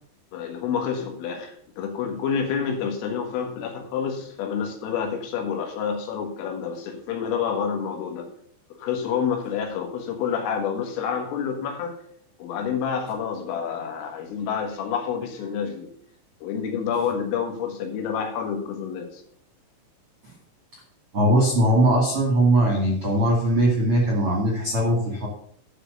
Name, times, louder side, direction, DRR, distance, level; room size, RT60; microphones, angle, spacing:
voice 1, 0.3-8.3 8.8-12.0 12.4-15.9 16.4-19.2, left 7 dB, 80° left, 3 dB, 4.1 m, -28 dB
voice 2, 21.1-25.3, right 1 dB, 45° right, -3 dB, 2.0 m, -20 dB
12.0 x 5.1 x 6.7 m, 0.64 s
omnidirectional pair, 5.9 m